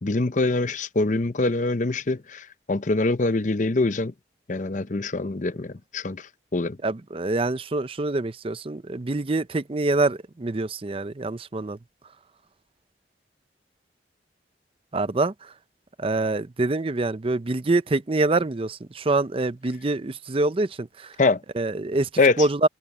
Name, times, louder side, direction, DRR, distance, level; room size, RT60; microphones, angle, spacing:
voice 1, 0.0-4.1 4.5-6.8 21.2-21.4 22.2-22.4, left 3 dB, 45° left, 0.7 m, -24 dB
voice 2, 6.8-11.8 14.9-15.5 16.0-21.2 21.5-22.1 22.4-22.7, right 2 dB, 30° right, 0.6 m, -25 dB
head